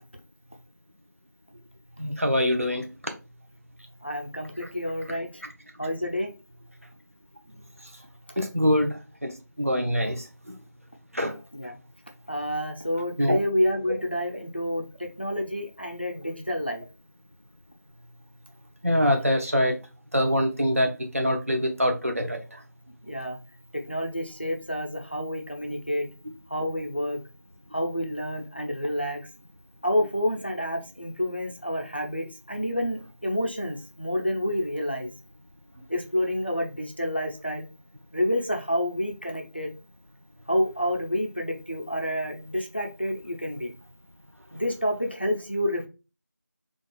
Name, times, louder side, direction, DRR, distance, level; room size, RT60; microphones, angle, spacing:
voice 1, 2.0-2.9 8.4-9.3 9.6-10.2 11.1-11.3 13.2-13.4 18.8-19.7 20.1-22.4, equal, 50° right, 0.7 m, -24 dB
voice 2, 4.0-5.4 5.8-6.3 11.5-11.8 12.3-16.9 23.0-23.4 23.9-26.1 26.5-27.2 27.7-29.3 29.8-35.1 35.9-37.7 38.1-39.7 40.5-43.7 44.5-45.9, equal, 35° left, 0.5 m, -29 dB
3.8 x 2.4 x 2.2 m
figure-of-eight pair, 175°, 10 cm